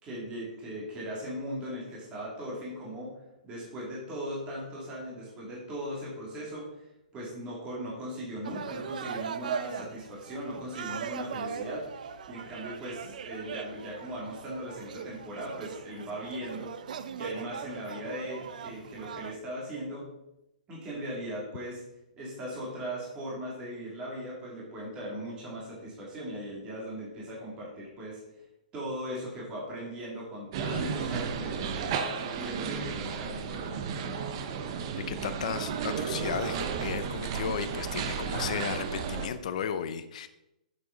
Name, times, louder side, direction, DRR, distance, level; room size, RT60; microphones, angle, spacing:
voice 1, 0.0-3.1 3.4-6.7 7.1-16.7 17.2-20.0 20.7-21.8 22.2-28.2 28.7-33.8, equal, 20° right, -5 dB, 2.7 m, -38 dB
sound 1, 8.4-19.4, right 7 dB, 65° right, 0.6 m, -39 dB
sound 2, 30.5-39.3, right 6 dB, 35° right, 0.8 m, -33 dB
voice 2, 35.1-40.3, left 7 dB, 50° left, 10 dB, 0.7 m, -34 dB
7.7 x 7.3 x 4.0 m, 0.88 s
hypercardioid pair, 160°, 5 cm